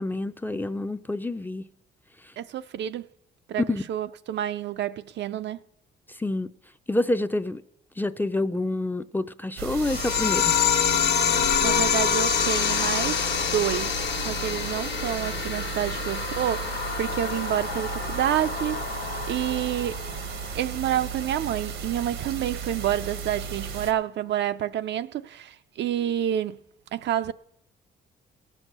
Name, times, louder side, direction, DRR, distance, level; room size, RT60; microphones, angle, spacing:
voice 1, 0.0-1.7 2.2-2.3 3.7-3.8 6.1-6.5 6.9-7.6 8.0-10.5, left 2 dB, 10° left, 0.4 m, -28 dB
voice 2, 2.4-3.1 3.5-3.6 3.9-5.6 11.3-13.2 13.5-18.8 19.3-20.0 20.5-26.6 26.9-27.3, right 11 dB, 65° right, 0.4 m, -28 dB
sound 1, 9.6-23.9, right 6 dB, 80° right, 1.1 m, -35 dB
sound 2, 9.8-20.8, left 7 dB, 60° left, 1.2 m, -27 dB
17.5 x 6.3 x 6.7 m
cardioid pair, 90°, 20 cm